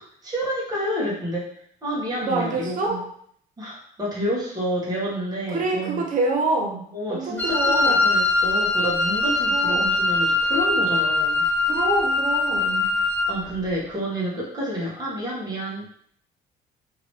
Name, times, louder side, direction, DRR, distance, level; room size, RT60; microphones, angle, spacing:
voice 1, 0.2-1.5 1.8-3.0 3.6-6.0 6.9-11.4 12.9-15.9, equal, 20° right, -6 dB, 1.4 m, -29 dB
voice 2, 2.2-3.1 5.5-8.0 9.5-10.0 11.7-12.9, right 3 dB, 50° right, 1 dB, 0.6 m, -26 dB
Wind instrument woodwind instrument, 7.4-13.4, left 2 dB, 10° left, 0.7 m, -22 dB
2.9 x 2.8 x 3.1 m, 0.63 s
cardioid pair, 110°, 17 cm